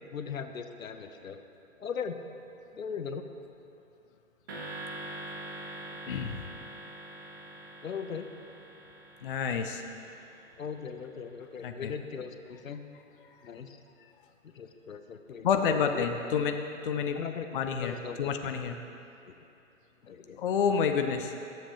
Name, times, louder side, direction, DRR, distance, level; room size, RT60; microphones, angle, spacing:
voice 1, 0.1-1.4 1.8-2.2 2.7-3.3 7.8-8.3 10.6-12.8 13.4-13.8 14.4-15.5 15.7-16.0 17.1-18.6 19.3-19.4 20.0-20.4, left 6 dB, 75° left, 7 dB, 0.7 m, -39 dB
sound 1, 4.5-10.9, right 2 dB, 15° right, 0.4 m, -44 dB
voice 2, 9.2-9.8 11.6-11.9 15.4-16.6 16.8-17.2 17.5-18.8 20.4-21.3, left 6 dB, 45° left, 6 dB, 0.4 m, -29 dB
12.5 x 7.4 x 2.8 m, 2.7 s
figure-of-eight pair, 125°, 41 cm